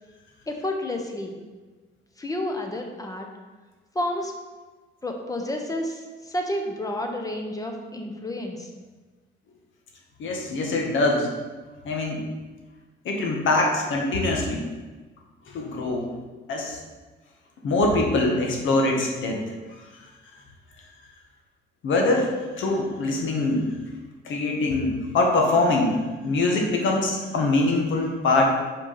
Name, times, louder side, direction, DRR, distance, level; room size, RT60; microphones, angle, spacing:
voice 1, 0.5-1.4 2.2-3.3 3.9-4.3 5.0-8.7, left 1 dB, 15° left, 3 dB, 1.2 m, -30 dB
voice 2, 10.2-11.3 11.8-12.2 13.0-14.6 15.5-16.1 16.5-16.8 17.6-19.4 21.8-23.6 24.2-26.0 26.2-28.4, left 2 dB, 75° left, 1 dB, 1.5 m, -23 dB
5.3 x 4.8 x 5.8 m, 1.3 s
cardioid pair, 90°, 20 cm